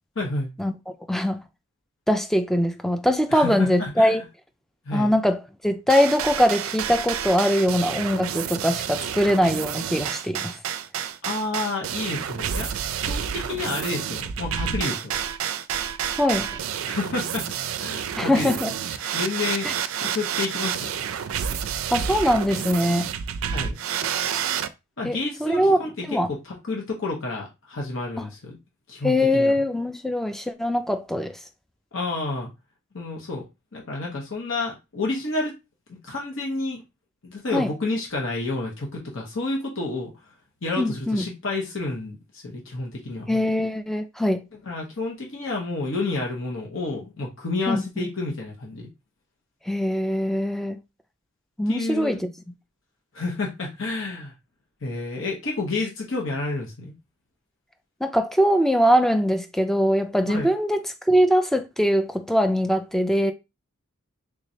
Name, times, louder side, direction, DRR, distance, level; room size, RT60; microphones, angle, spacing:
voice 1, 0.2-0.5 3.3-4.2 4.8-5.1 11.2-12.7 13.0-15.2 16.8-17.5 17.8-18.5 19.1-19.7 20.0-20.9 23.5-23.8 25.0-25.9 26.3-28.5 28.9-29.5 31.9-32.5 32.9-33.5 33.7-35.5 35.9-36.8 37.2-40.1 40.6-43.3 44.7-48.9 51.7-52.2 53.1-54.3 54.8-56.9 60.3-60.5, left 3 dB, 60° left, 1.0 m, -30 dB
voice 2, 1.1-1.4 2.1-4.2 4.9-10.6 16.2-16.5 18.2-18.7 19.6-19.7 21.9-23.1 25.0-25.8 26.1-26.3 29.0-31.4 37.5-37.7 40.8-41.3 43.3-44.4 47.7-48.1 49.7-50.8 51.6-52.3 58.0-60.8 61.1-63.3, equal, ahead, 0.3 m, -22 dB
sound 1, 5.9-24.7, right 8 dB, 70° right, 0.4 m, -29 dB
3.6 x 3.1 x 2.7 m
head